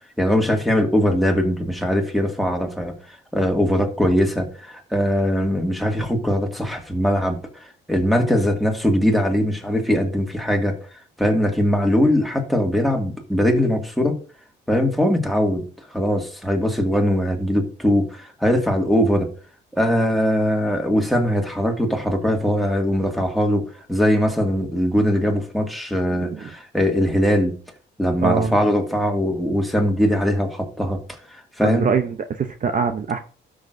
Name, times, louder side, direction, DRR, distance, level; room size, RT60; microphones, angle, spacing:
voice 1, 0.2-10.8 11.2-14.2 14.7-15.6 15.9-19.3 19.7-23.6 23.9-27.5 28.0-31.0 31.3-31.9, equal, ahead, 3 dB, 2.0 m, -21 dB
voice 2, 26.2-26.5 28.2-28.5 31.6-33.2, right 6 dB, 45° right, 8 dB, 0.7 m, -23 dB
12.5 x 6.3 x 2.6 m, 0.40 s
cardioid pair, 90°, 20 cm